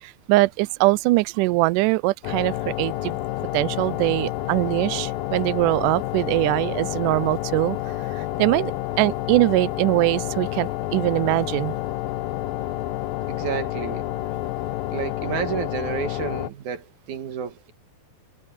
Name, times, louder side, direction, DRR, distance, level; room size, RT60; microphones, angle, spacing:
voice 1, 0.0-3.2 3.5-7.8 8.1-8.7 9.0-11.8, right 21 dB, 80° right, 1.9 m, -22 dB
sound 1, 2.2-16.5, left 15 dB, 75° left, 2.6 m, -29 dB
voice 2, 13.3-14.1 14.9-17.7, right 8 dB, 60° right, 3.0 m, -30 dB
omnidirectional pair, 4.2 m